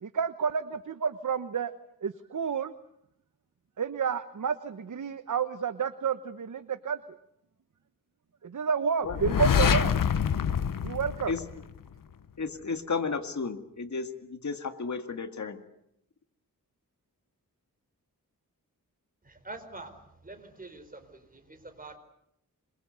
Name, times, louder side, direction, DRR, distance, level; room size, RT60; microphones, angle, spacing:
voice 1, 0.0-1.7 2.0-2.7 3.8-7.0 8.4-9.9 10.8-11.3, right 6 dB, 60° right, 10 dB, 1.1 m, -30 dB
sound 1, 9.1-12.0, left 7 dB, 70° left, 0.9 m, -26 dB
voice 2, 12.4-15.6, left 4 dB, 55° left, 7 dB, 2.1 m, -33 dB
voice 3, 19.2-19.9 20.2-22.0, right 2 dB, 25° right, 6 dB, 4.6 m, -45 dB
27.0 x 22.5 x 8.1 m, 0.76 s
wide cardioid pair, 90°, 34 cm